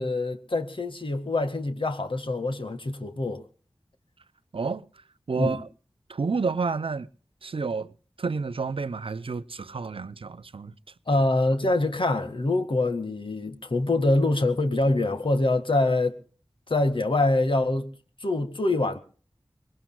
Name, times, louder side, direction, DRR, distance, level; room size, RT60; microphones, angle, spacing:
voice 1, 0.0-3.4 5.4-5.6 11.1-16.2 16.7-17.9 18.2-19.0, left 2 dB, 65° left, 2.0 m, -25 dB
voice 2, 4.5-4.8 5.3-5.7 6.1-7.1 7.4-10.7, right 4 dB, 70° right, 0.7 m, -30 dB
24.0 x 20.5 x 2.3 m
cardioid pair, 40°, 10 cm